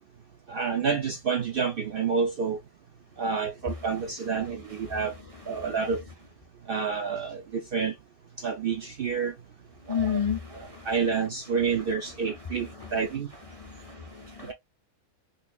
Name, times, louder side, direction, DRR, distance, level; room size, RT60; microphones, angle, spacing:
voice 1, 0.5-2.6 3.2-5.1 5.5-6.0 6.7-7.9 8.4-9.3 10.0-10.2 10.9-13.3, right 5 dB, 65° right, 0.5 m, -28 dB
voice 2, 4.3-5.1 5.5-5.8 9.9-10.9 12.2-13.1 13.5-14.5, left 8 dB, 55° left, 0.4 m, -34 dB
4.0 x 2.7 x 2.3 m
omnidirectional pair, 1.5 m